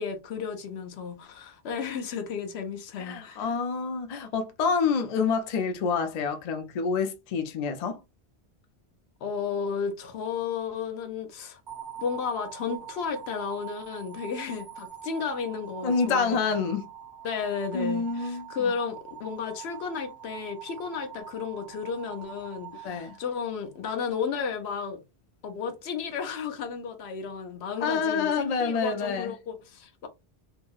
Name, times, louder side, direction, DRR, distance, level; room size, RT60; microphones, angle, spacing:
voice 1, 0.0-3.5 9.2-11.6 12.0-16.5 17.2-25.0 25.4-30.1, left 6 dB, 80° left, 0.9 m, -33 dB
voice 2, 3.0-8.0 15.8-16.9 17.7-18.7 22.8-23.2 27.8-29.3, left 5 dB, 50° left, 0.5 m, -27 dB
sound 1, 11.7-23.8, right 10 dB, 50° right, 0.8 m, -44 dB
2.8 x 2.7 x 2.3 m
omnidirectional pair, 1.1 m